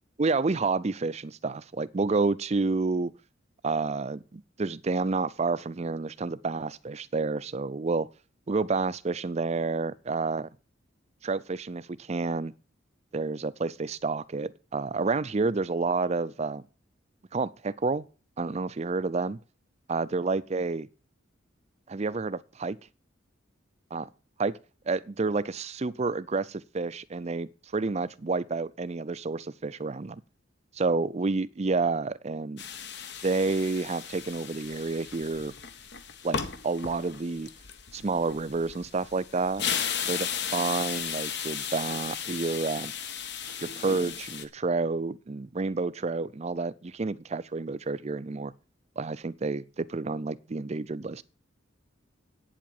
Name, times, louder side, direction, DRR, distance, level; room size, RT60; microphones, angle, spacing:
voice 1, 0.2-3.1 3.6-8.1 8.5-10.5 11.2-12.5 13.1-16.6 17.3-18.1 18.4-19.4 19.9-20.9 21.9-22.8 23.9-24.0 24.4-24.5 24.9-30.2 30.7-32.6 33.2-35.5 36.2-37.5 37.9-39.6 40.1-42.9 43.6-48.5 49.0-51.2, right 3 dB, 35° right, 0.5 m, -29 dB
sound 1, 32.6-44.4, left 7 dB, 60° left, 1.2 m, -35 dB
8.9 x 7.6 x 7.1 m
head